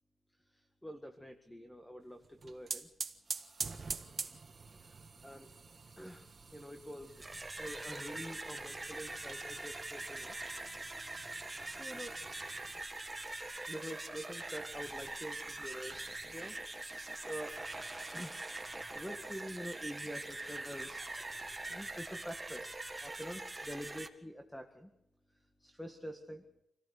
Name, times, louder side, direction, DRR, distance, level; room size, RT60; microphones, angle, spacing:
voice 1, 0.5-2.9 4.8-5.5 6.0-7.2 7.6-10.4 11.2-11.5 11.8-12.1 13.7-17.5 18.1-18.4 18.9-21.1 21.7-24.9 25.6-26.4, equal, 5° left, 5 dB, 1.8 m, -46 dB
sound 1, 2.2-12.8, right 4 dB, 40° right, 1.5 m, -46 dB
sound 2, 7.0-24.1, right 2 dB, 15° right, 1.9 m, -43 dB
27.0 x 18.0 x 6.7 m, 0.80 s
wide cardioid pair, 135°, 0 cm